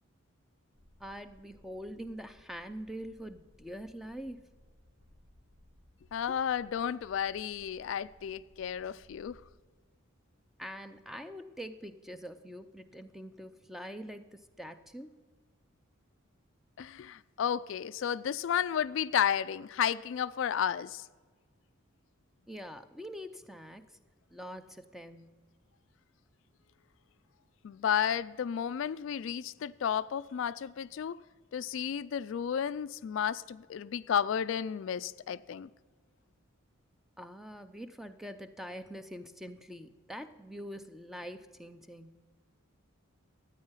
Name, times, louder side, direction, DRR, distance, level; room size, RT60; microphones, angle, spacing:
sound 1, 0.7-9.5, left 1 dB, 75° right, 2.6 m, -62 dB
voice 1, 1.0-4.4 10.6-15.2 22.5-23.8 24.3-25.4 37.2-42.2, equal, ahead, 0.5 m, -44 dB
voice 2, 6.1-9.4 16.8-21.0 27.6-31.2 31.5-35.7, left 8 dB, 65° left, 0.3 m, -32 dB
13.0 x 8.9 x 5.6 m
head